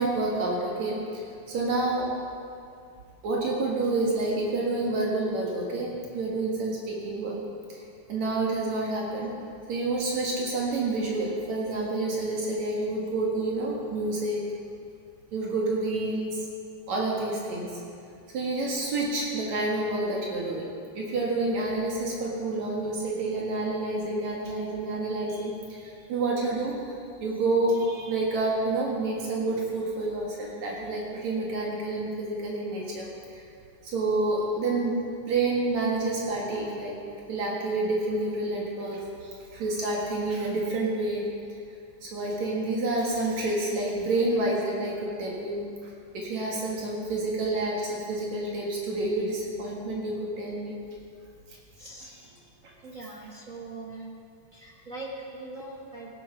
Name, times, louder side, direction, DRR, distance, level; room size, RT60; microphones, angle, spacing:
voice 1, 0.0-2.1 3.2-7.4 7.7-7.8 8.1-9.3 9.7-14.4 15.3-16.4 16.9-17.7 18.3-20.7 20.9-26.9 27.2-33.1 33.3-33.4 33.8-34.9 35.3-37.0 37.3-41.3 42.0-50.8 52.6-52.7, right 2 dB, 70° right, -3 dB, 3.0 m, -28 dB
voice 2, 51.8-52.1 52.8-54.2 54.5-56.1, right 2 dB, 45° right, -3 dB, 1.1 m, -41 dB
16.5 x 9.2 x 5.8 m, 2.3 s
omnidirectional pair, 3.4 m